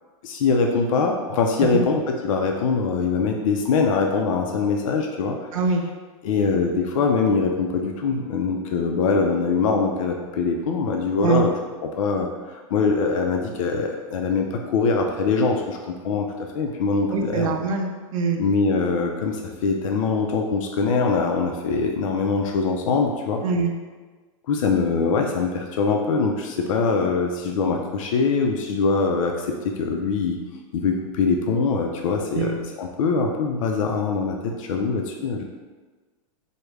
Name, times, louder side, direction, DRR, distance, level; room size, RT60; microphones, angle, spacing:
voice 1, 0.2-5.5 6.2-11.5 12.0-16.3 16.5-17.5 18.4-23.4 24.5-30.4 30.7-35.4, left 4 dB, 75° left, 2 dB, 0.4 m, -23 dB
voice 2, 5.5-5.8 11.2-11.5 17.1-18.4 23.4-23.7 32.3-32.6, right 4 dB, 75° right, 3 dB, 0.5 m, -23 dB
3.5 x 2.1 x 3.2 m, 1.3 s
supercardioid pair, 165°, 17 cm